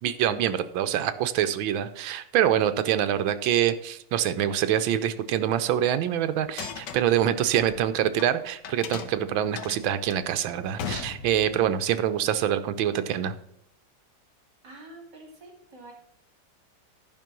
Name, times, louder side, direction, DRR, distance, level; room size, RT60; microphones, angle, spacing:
voice 1, 0.0-13.3, right 10 dB, 80° right, 11 dB, 1.5 m, -25 dB
sound 1, 6.4-8.3 8.6-11.7, left 7 dB, 65° left, 1.4 m, -37 dB
voice 2, 14.6-15.9, right 2 dB, 60° right, 2 dB, 2.9 m, -47 dB
11.0 x 5.4 x 6.0 m, 0.76 s
omnidirectional pair, 2.2 m